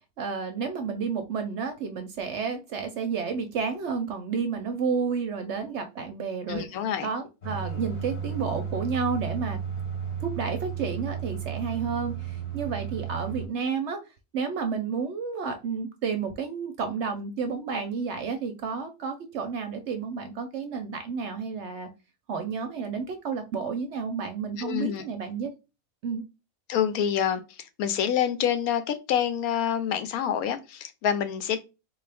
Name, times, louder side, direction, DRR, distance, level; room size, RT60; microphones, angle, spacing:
voice 1, 0.2-6.7 7.0-9.6 10.2-14.0 14.3-21.9 22.3-25.5 26.0-26.2, right 5 dB, 65° right, 0.7 m, -31 dB
voice 2, 6.5-7.1 24.6-25.0 26.7-27.4 27.8-31.6, left 9 dB, 80° left, 1.0 m, -27 dB
sound 1, 7.4-13.5, right 8 dB, 35° left, 0.9 m, -33 dB
3.6 x 2.4 x 3.3 m
omnidirectional pair, 1.6 m